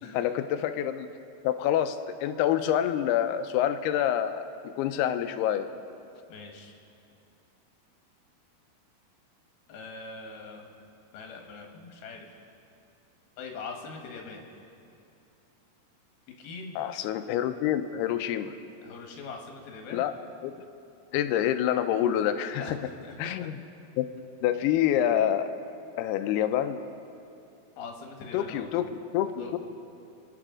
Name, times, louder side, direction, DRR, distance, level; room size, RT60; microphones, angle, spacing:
voice 1, 0.1-1.1 1.4-4.4 4.8-5.7 16.8-18.5 19.9-20.1 20.4-20.5 21.1-22.6 23.2-23.6 24.0-24.1 24.4-25.5 26.0-26.8 28.3-29.6, left 10 dB, 90° left, 9 dB, 2.7 m, -27 dB
voice 2, 6.3-6.7 9.7-10.7 11.1-12.3 13.4-14.4 16.4-16.8 18.8-20.0 22.6-23.2 27.8-28.7 29.4-29.5, left 4 dB, 75° left, 2 dB, 3.3 m, -42 dB
29.5 x 9.9 x 3.7 m, 2.6 s
omnidirectional pair, 4.6 m